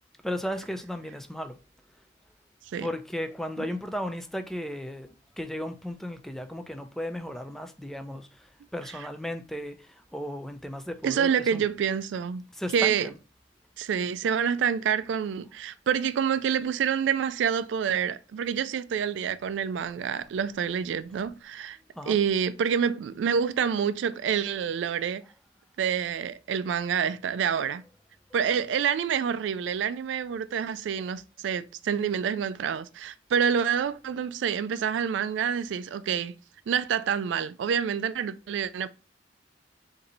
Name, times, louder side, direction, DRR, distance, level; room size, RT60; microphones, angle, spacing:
voice 1, 0.2-1.6 2.8-5.1 5.4-11.6 12.5-13.1 22.0-22.2, equal, ahead, 0.4 m, -35 dB
voice 2, 11.0-12.4 12.7-13.1 13.8-21.8 22.1-25.2 25.8-27.8 28.3-36.3 36.7-38.9, right 7 dB, 75° right, 0.3 m, -27 dB
3.9 x 2.6 x 4.1 m
head